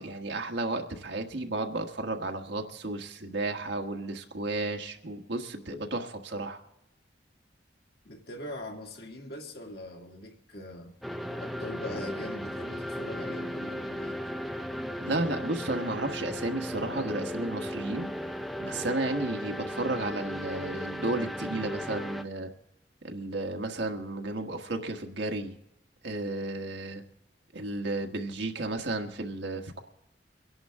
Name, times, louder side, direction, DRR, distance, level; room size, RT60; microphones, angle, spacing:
voice 1, 0.0-6.6 15.0-18.1 18.6-22.5 23.0-25.5 26.0-27.0 27.5-29.8, right 2 dB, 80° right, 1.5 m, -33 dB
voice 2, 8.0-10.9 11.4-14.2, left 1 dB, 60° left, 2.2 m, -42 dB
sound 1, 11.0-22.2, equal, ahead, 0.6 m, -36 dB
24.5 x 11.0 x 3.7 m
head